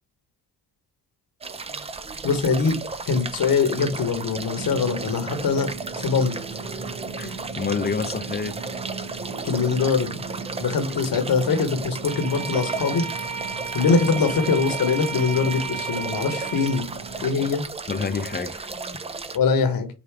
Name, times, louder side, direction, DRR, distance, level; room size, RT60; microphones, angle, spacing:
sound 1, 1.4-19.4, right 4 dB, 15° right, 0.4 m, -35 dB
voice 1, 2.2-2.8 3.1-5.7 6.0-6.3 9.4-10.2 10.6-13.0 13.7-16.9 17.2-17.6 19.3-19.9, left 5 dB, 55° left, 1.1 m, -22 dB
Drum, 4.6-17.5, right 4 dB, 55° right, 1.8 m, -38 dB
voice 2, 7.2-8.6 17.9-18.7, left 5 dB, 25° left, 0.6 m, -28 dB
Bowed string instrument, 12.0-16.9, right 5 dB, 80° right, 0.9 m, -33 dB
4.8 x 2.4 x 3.3 m
supercardioid pair, 60°, 40 cm